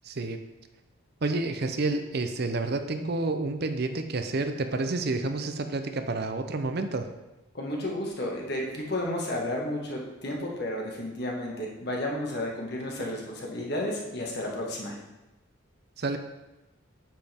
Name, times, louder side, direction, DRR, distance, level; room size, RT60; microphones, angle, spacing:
voice 1, 0.0-0.4 1.2-7.1 16.0-16.2, right 3 dB, 50° right, 7 dB, 0.6 m, -29 dB
voice 2, 7.5-15.0, left 1 dB, 50° left, -1 dB, 1.8 m, -32 dB
9.1 x 7.5 x 3.6 m, 1.0 s
head